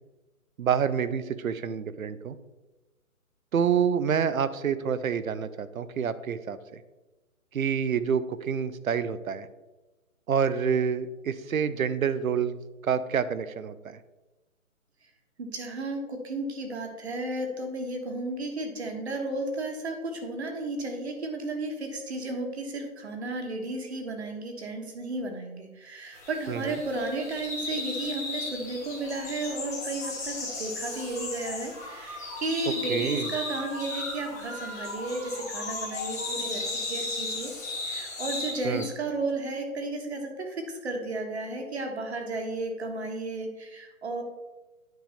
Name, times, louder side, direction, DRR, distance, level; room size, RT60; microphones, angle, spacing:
voice 1, 0.6-2.4 3.5-6.8 7.5-9.5 10.3-12.5 12.8-14.0 26.5-26.7 32.9-33.3 38.6-38.9, right 7 dB, 70° right, 15 dB, 0.7 m, -27 dB
voice 2, 15.4-37.5 37.8-44.2, right 2 dB, 50° right, 3 dB, 1.6 m, -33 dB
sound 1, 26.1-38.9, left 2 dB, 10° left, 0.8 m, -35 dB
9.2 x 3.5 x 5.7 m, 1.1 s
hypercardioid pair, 165°, 42 cm